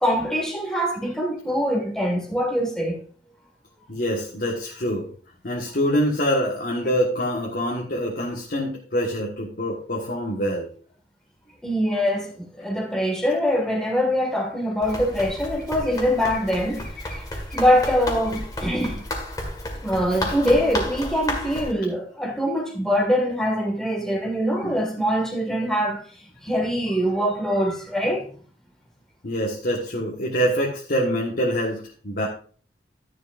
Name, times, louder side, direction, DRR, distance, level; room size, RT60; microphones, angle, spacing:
voice 1, 0.0-3.0 11.6-19.0 19.8-26.0 26.4-28.3, equal, 5° left, 1.9 m, -23 dB
voice 2, 3.9-5.1 5.4-10.7 20.1-20.4 24.6-24.8 29.2-32.3, equal, 55° left, 1.6 m, -25 dB
Run, 14.8-21.7, left 1 dB, 20° left, 1.9 m, -32 dB
12.0 x 10.5 x 2.6 m
head